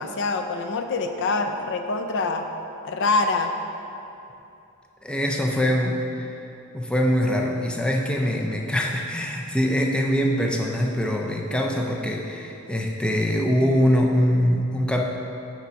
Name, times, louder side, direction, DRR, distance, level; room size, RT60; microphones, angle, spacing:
voice 1, 0.0-2.5 2.8-3.5, left 3 dB, 55° left, 5 dB, 0.5 m, -25 dB
voice 2, 5.0-6.3 6.7-15.0, equal, 5° left, 0 dB, 0.4 m, -23 dB
6.8 x 4.7 x 5.1 m, 2.8 s
head